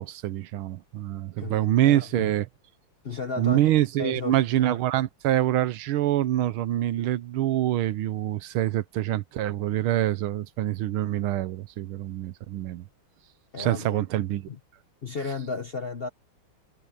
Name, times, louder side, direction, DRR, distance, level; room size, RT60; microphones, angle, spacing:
voice 1, 0.0-2.5 3.4-12.8 13.6-14.5, right 13 dB, 85° right, 1.7 m, -25 dB
voice 2, 1.4-2.3 3.0-3.6 4.0-4.8 13.5-14.0 14.5-14.6 15.0-16.1, left 4 dB, 45° left, 0.7 m, -34 dB
omnidirectional pair, 2.2 m